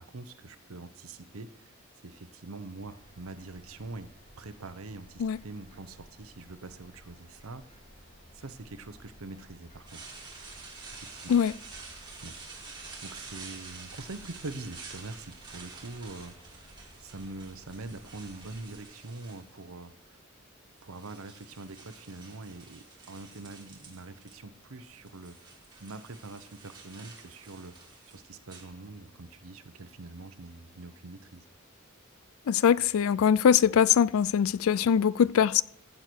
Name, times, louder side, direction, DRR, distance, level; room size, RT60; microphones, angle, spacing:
voice 1, 0.0-4.1 4.4-7.6 8.3-10.0 10.9-11.3 12.2-12.3 13.0-16.7 17.0-20.2 20.8-25.4 25.8-27.8 28.0-31.4, right 3 dB, 85° right, 0.9 m, -44 dB
sound 1, 2.8-18.8, equal, 35° left, 2.6 m, -56 dB
sound 2, 9.9-19.8 20.5-24.4 24.6-29.2, right 4 dB, 20° right, 2.4 m, -49 dB
voice 2, 32.5-35.6, left 8 dB, 75° left, 0.3 m, -22 dB
15.5 x 6.6 x 4.5 m
head